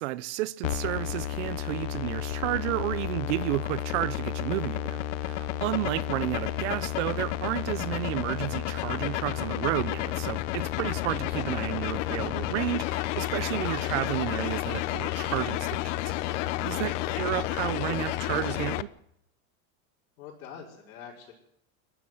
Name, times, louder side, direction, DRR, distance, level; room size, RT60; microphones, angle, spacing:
voice 1, 0.0-16.0 16.2-18.9, right 17 dB, 60° right, 0.8 m, -32 dB
sound 1, 0.6-18.8, left 14 dB, 60° left, 1.0 m, -31 dB
voice 2, 13.7-14.1 16.9-17.2 20.2-21.3, left 7 dB, 85° left, 5.5 m, -45 dB
29.5 x 12.0 x 7.7 m
supercardioid pair, 175°, 41 cm